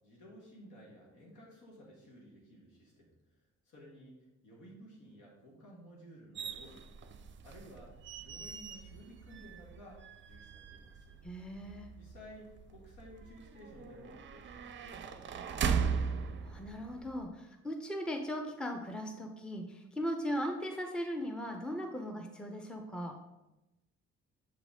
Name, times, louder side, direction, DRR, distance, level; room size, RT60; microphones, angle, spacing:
voice 1, 0.0-3.1 3.6-6.9 7.4-11.2 12.0-15.3 15.5-16.4, equal, 85° left, -3 dB, 1.7 m, -55 dB
sound 1, 6.4-17.2, right 6 dB, 40° right, 0.5 m, -39 dB
voice 2, 11.2-11.9 16.4-23.2, equal, 5° left, 3 dB, 0.6 m, -38 dB
7.3 x 4.0 x 3.6 m, 0.97 s
cardioid pair, 90°, 30 cm